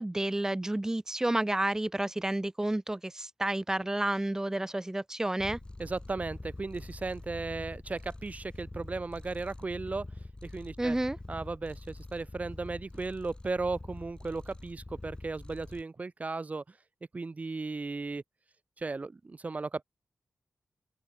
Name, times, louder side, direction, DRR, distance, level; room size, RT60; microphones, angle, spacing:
voice 1, 0.0-5.6 10.8-11.2, right 1 dB, 15° right, 0.7 m, -30 dB
Purr, 5.4-15.8, left 2 dB, 25° left, 3.7 m, -45 dB
voice 2, 5.8-10.0 10.4-11.0 11.3-16.6 17.1-18.2 18.8-19.8, right 3 dB, 40° right, 1.4 m, -36 dB
open air
cardioid pair, 65°, 4 cm